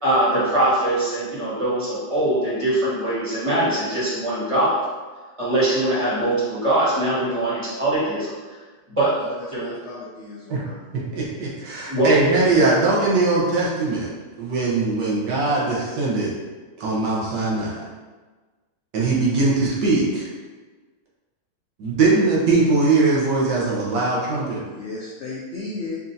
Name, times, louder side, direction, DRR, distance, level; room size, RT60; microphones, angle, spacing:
voice 1, 0.0-4.8 5.4-8.6 9.0-9.1 9.5-9.6 11.9-12.1, right 1 dB, 20° right, -10 dB, 1.5 m, -22 dB
voice 2, 9.1-11.0 24.6-26.0, left 3 dB, 70° left, -4 dB, 0.6 m, -35 dB
voice 3, 10.9-14.1 14.4-16.3 16.8-17.8 18.9-20.3 21.8-24.6, right 3 dB, 75° right, -5 dB, 1.6 m, -21 dB
5.3 x 2.7 x 2.6 m, 1.3 s
omnidirectional pair, 1.9 m